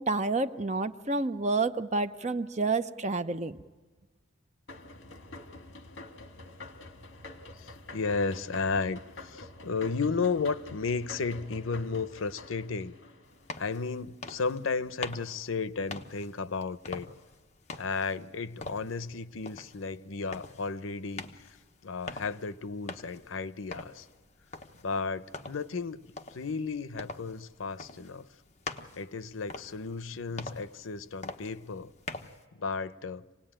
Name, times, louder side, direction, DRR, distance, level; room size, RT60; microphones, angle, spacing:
voice 1, 0.0-3.6, right 3 dB, 35° right, 0.7 m, -29 dB
sound 1, 4.7-13.8, left 2 dB, 65° left, 1.8 m, -47 dB
voice 2, 7.6-13.0 13.6-17.1 17.8-21.5 21.8-24.1 24.8-26.0 26.3-28.3 29.0-31.9 32.5-33.3, left 4 dB, 80° left, 0.7 m, -33 dB
sound 2, 13.3-32.4, left 3 dB, 35° left, 1.1 m, -45 dB
27.0 x 18.5 x 8.9 m
head